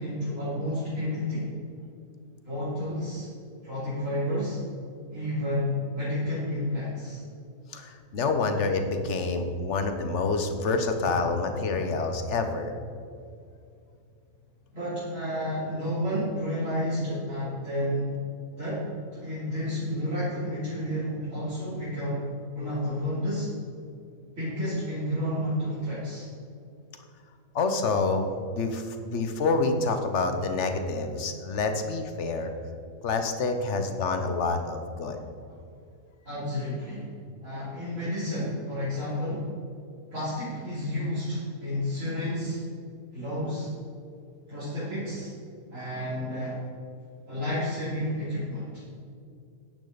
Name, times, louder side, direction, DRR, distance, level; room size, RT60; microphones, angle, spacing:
voice 1, 0.0-1.5 2.5-3.3 3.6-4.6 5.1-7.2 14.7-18.2 18.6-18.9 19.1-22.2 22.5-23.5 24.4-26.3 36.2-37.1 37.4-39.5 40.1-42.6 43.1-43.7 44.5-45.3 45.7-46.6 47.3-48.8, left 1 dB, 60° right, -12 dB, 3.5 m, -31 dB
voice 2, 7.7-12.7 27.5-28.3 28.5-32.5 33.0-35.2, left 3 dB, 55° left, 6 dB, 1.1 m, -27 dB
10.0 x 9.8 x 4.0 m, 2.4 s
omnidirectional pair, 1.5 m